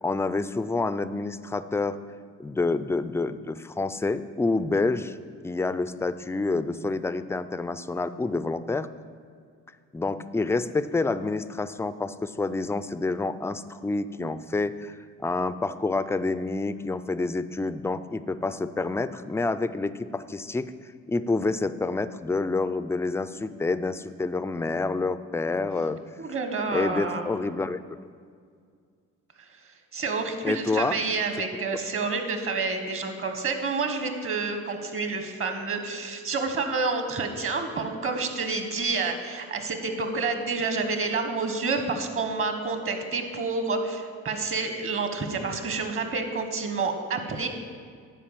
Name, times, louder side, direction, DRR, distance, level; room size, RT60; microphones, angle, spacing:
voice 1, 0.0-2.0 2.4-5.2 5.4-8.9 9.9-15.0 15.2-20.7 21.1-26.0 26.7-27.8 30.4-31.0, left 3 dB, 10° left, 13 dB, 0.3 m, -28 dB
voice 2, 26.2-27.3 29.4-47.5, right 4 dB, 45° right, 6 dB, 1.3 m, -29 dB
10.0 x 4.7 x 7.4 m, 2.1 s
cardioid pair, 90°, 30 cm